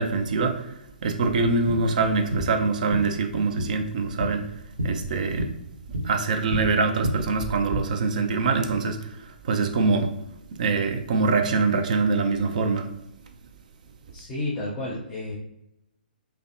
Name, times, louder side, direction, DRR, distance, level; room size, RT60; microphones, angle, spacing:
voice 1, 0.0-4.5 4.8-5.5 6.0-10.1 10.6-12.9, right 4 dB, 50° right, 6 dB, 0.4 m, -24 dB
sound 1, 1.2-7.8, equal, 65° right, 0.8 m, -32 dB
voice 2, 14.1-15.3, left 2 dB, 20° left, -5 dB, 0.5 m, -31 dB
3.2 x 2.1 x 2.5 m, 0.84 s
figure-of-eight pair, 125°, 5 cm